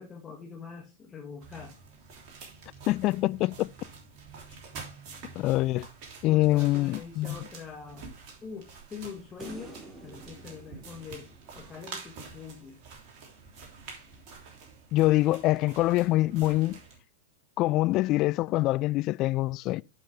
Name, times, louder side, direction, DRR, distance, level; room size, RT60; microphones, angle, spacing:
voice 1, 0.0-1.8 6.3-8.1 8.4-11.3 11.5-12.8, left 5 dB, 20° left, 1.6 m, -44 dB
sound 1, 1.4-17.0, right 4 dB, 45° right, 3.2 m, -47 dB
voice 2, 2.9-3.7 5.4-5.9 6.2-7.4 14.9-16.8 17.6-19.8, left 17 dB, 40° left, 0.3 m, -25 dB
sound 2, 9.4-12.7 15.6-15.7, right 2 dB, 15° right, 2.6 m, -49 dB
10.5 x 5.3 x 3.6 m
figure-of-eight pair, 95°, 0 cm